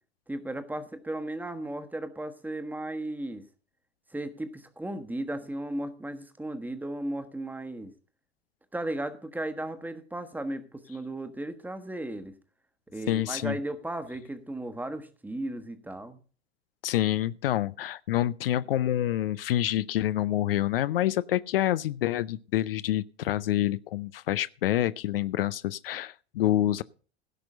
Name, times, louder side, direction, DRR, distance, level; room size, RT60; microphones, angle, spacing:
voice 1, 0.3-3.4 4.1-7.9 8.7-12.4 12.9-16.2, right 1 dB, 5° right, 1.3 m, -35 dB
voice 2, 13.1-13.6 16.8-26.8, left 13 dB, 60° left, 0.5 m, -27 dB
16.5 x 6.0 x 6.5 m
figure-of-eight pair, 80°, 32 cm